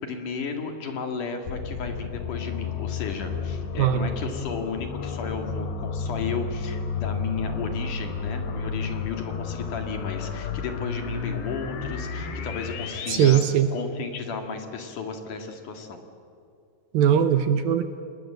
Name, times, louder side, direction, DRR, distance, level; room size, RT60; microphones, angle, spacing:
voice 1, 0.0-13.4 13.7-16.0, left 5 dB, 55° left, 5 dB, 3.2 m, -34 dB
sound 1, 1.5-13.4, left 5 dB, 90° left, 4.3 m, -32 dB
voice 2, 3.8-4.1 13.1-13.7 16.9-17.8, right 9 dB, 75° right, 9 dB, 2.4 m, -20 dB
28.5 x 20.0 x 7.8 m, 2.6 s
omnidirectional pair, 4.8 m